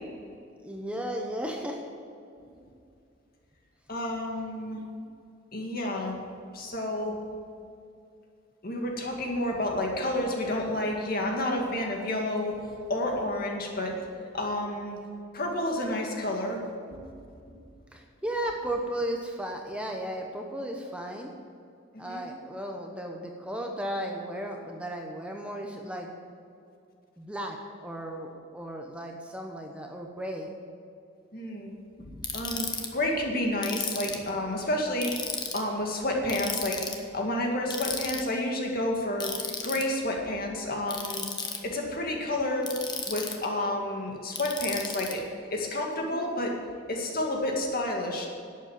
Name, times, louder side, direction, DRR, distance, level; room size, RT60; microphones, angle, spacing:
voice 1, 0.6-1.8 17.9-21.3 22.0-26.1 27.2-30.5, right 1 dB, 5° right, 1 dB, 1.0 m, -35 dB
voice 2, 3.9-4.8 5.5-6.2 6.5-7.2 8.6-12.6 12.9-14.0 14.3-15.0 15.3-16.6 16.9-17.0 17.5-17.6 22.0-22.3 31.3-31.7 32.0-32.7 32.9-35.3 35.5-41.2 41.6-42.7 43.0-45.2 45.5-46.5 46.9-48.3, left 1 dB, 50° left, 0 dB, 2.2 m, -30 dB
Ratchet pawl, 32.2-32.9 33.6-34.3 35.0-35.6 36.3-37.0 37.7-38.2 39.2-39.8 40.9-41.6 42.6-43.5 44.4-45.1, left 5 dB, 20° left, 1.1 m, -34 dB
11.5 x 8.2 x 7.5 m, 2.4 s
head